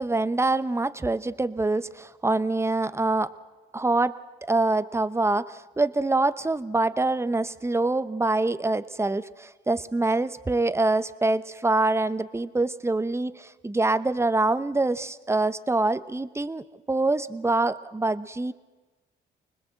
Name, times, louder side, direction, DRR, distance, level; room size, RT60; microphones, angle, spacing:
voice 1, 0.0-3.3 3.7-4.2 4.4-18.5, right 2 dB, 15° right, 14 dB, 0.9 m, -25 dB
25.5 x 20.0 x 7.7 m, 1.2 s
cardioid pair, 90°, 20 cm